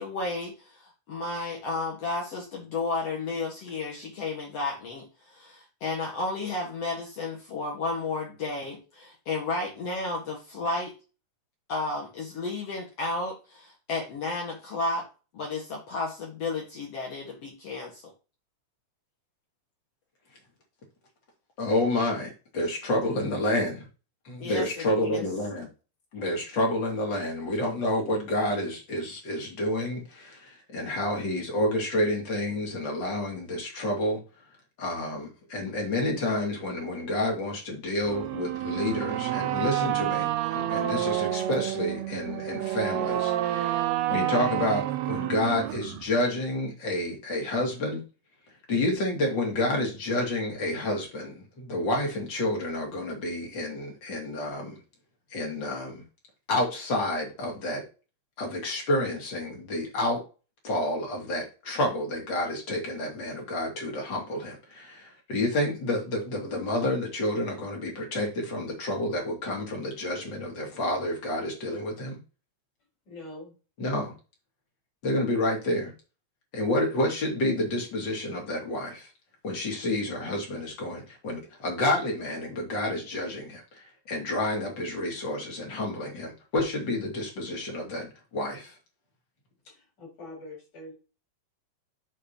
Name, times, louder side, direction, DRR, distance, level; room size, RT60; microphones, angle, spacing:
voice 1, 0.0-10.9 11.7-15.1 15.3-18.0 24.4-25.2, left 3 dB, 60° left, -1 dB, 2.6 m, -32 dB
voice 2, 21.6-23.9 24.2-25.7 26.1-34.2 34.8-48.0 48.7-54.8 55.3-56.0 56.5-57.8 58.4-60.2 60.6-72.2 73.8-74.1 75.0-75.9 76.5-79.1 79.4-88.1 88.3-88.8, left 1 dB, 40° left, 0 dB, 3.0 m, -29 dB
sound 1, 38.0-46.0, right 13 dB, 75° right, 1.6 m, -29 dB
voice 3, 73.1-73.5 89.7-90.9, left 1 dB, 80° left, -2 dB, 6.1 m, -44 dB
12.0 x 4.2 x 2.9 m, 0.32 s
omnidirectional pair, 3.4 m